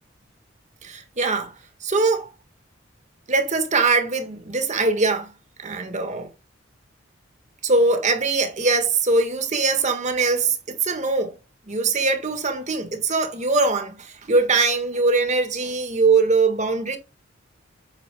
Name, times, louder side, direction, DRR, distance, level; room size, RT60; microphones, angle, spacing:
voice 1, 0.8-1.5 1.8-2.3 3.3-5.3 5.6-6.3 7.6-11.3 11.7-17.0, right 3 dB, 40° right, 1.5 m, -22 dB
8.8 x 8.6 x 2.2 m
head